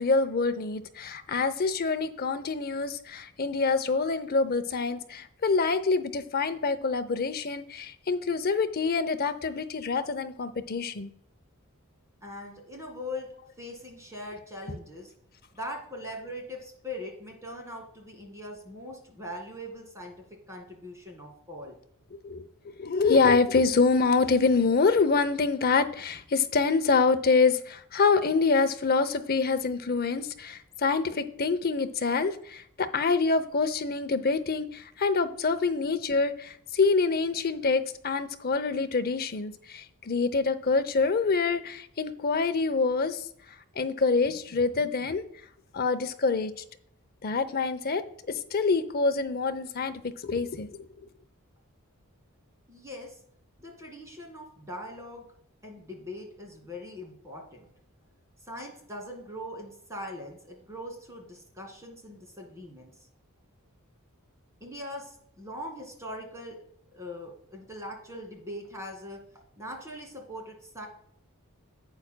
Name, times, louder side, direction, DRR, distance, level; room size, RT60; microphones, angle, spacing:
voice 1, 0.0-11.1 22.2-22.5 22.8-43.2 43.8-45.2 45.7-46.5 47.2-48.0 48.3-50.9, left 4 dB, 45° left, 10 dB, 0.7 m, -26 dB
voice 2, 12.2-13.3 13.6-15.1 15.5-20.2 20.5-21.8 52.7-53.1 53.6-55.3 55.6-57.7 58.5-62.9 64.6-66.6 66.9-69.2 69.6-70.9, left 1 dB, 15° right, 2 dB, 2.1 m, -41 dB
11.5 x 8.5 x 2.2 m, 0.67 s
head